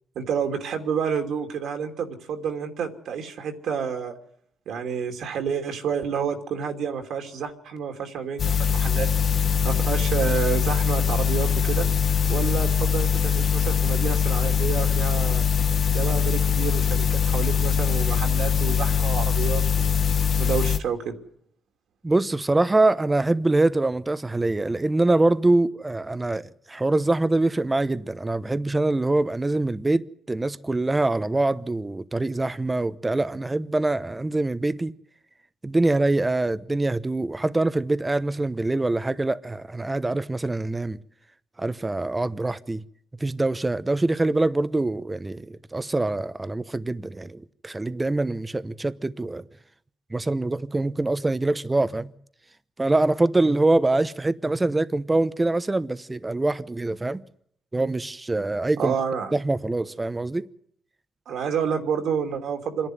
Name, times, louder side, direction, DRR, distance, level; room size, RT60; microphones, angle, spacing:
voice 1, 0.1-4.1 4.7-9.1 9.6-11.9 12.3-15.4 15.9-19.9 20.4-21.2 58.8-59.3 61.3-62.9, right 7 dB, 70° right, 2.8 m, -29 dB
sound 1, 8.4-20.8, left 7 dB, 50° left, 1.2 m, -22 dB
voice 2, 22.0-34.9 35.6-41.0 41.6-42.8 43.2-49.4 50.1-52.1 52.8-57.2 57.7-58.9 59.3-60.4, right 2 dB, 15° right, 0.9 m, -24 dB
26.5 x 11.0 x 9.5 m
cardioid pair, 100°, 0 cm